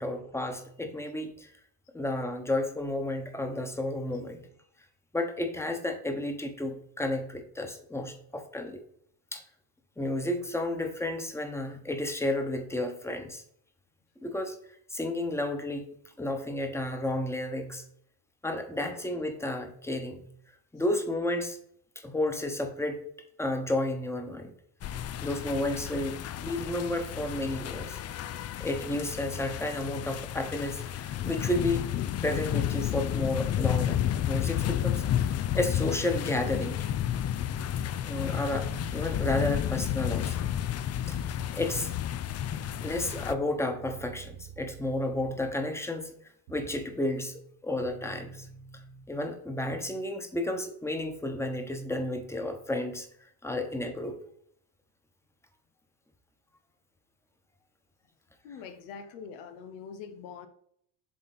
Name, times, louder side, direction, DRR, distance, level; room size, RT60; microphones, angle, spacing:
voice 1, 0.0-1.5 1.9-4.4 5.1-8.8 9.3-9.4 10.0-13.4 14.2-14.6 14.9-15.9 16.2-17.8 18.4-20.3 20.7-21.6 21.9-23.0 23.4-24.5 25.2-28.0 28.6-31.9 32.2-35.0 35.5-36.8 38.0-40.5 41.1-41.2 41.5-41.9 42.8-46.1 46.5-48.5 49.1-53.1 53.4-54.2, left 1 dB, 5° left, 5 dB, 1.1 m, -32 dB
sound 1, 24.8-43.3, left 11 dB, 35° left, 0.4 m, -31 dB
sound 2, 37.3-40.3 41.1-41.5 42.5-45.7 46.5-46.9 47.8-49.0, right 5 dB, 90° right, 1.6 m, -48 dB
voice 2, 58.4-60.5, left 6 dB, 90° left, 9 dB, 1.0 m, -43 dB
7.5 x 3.9 x 4.2 m, 0.67 s
supercardioid pair, 95°, 44 cm